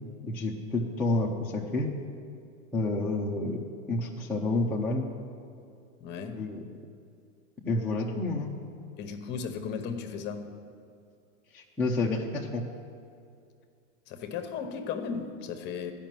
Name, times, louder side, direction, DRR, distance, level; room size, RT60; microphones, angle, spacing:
voice 1, 0.2-1.9 2.7-5.1 6.4-6.7 7.6-8.6 11.5-12.7, left 2 dB, 5° left, -6 dB, 0.4 m, -29 dB
voice 2, 6.0-6.4 9.0-10.5 14.1-15.9, left 6 dB, 25° left, 7 dB, 1.0 m, -35 dB
13.5 x 5.7 x 9.0 m, 2.3 s
supercardioid pair, 145°, 40 cm